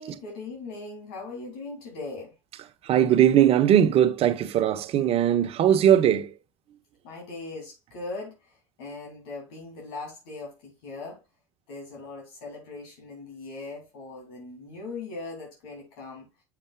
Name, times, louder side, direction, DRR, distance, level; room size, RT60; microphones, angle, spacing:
voice 1, 0.0-2.3 7.0-11.2 11.7-16.3, left 3 dB, 85° left, 2.9 m, -39 dB
voice 2, 2.9-6.3, right 10 dB, 55° right, 1.0 m, -20 dB
7.1 x 6.8 x 2.3 m
supercardioid pair, 95°, 12 cm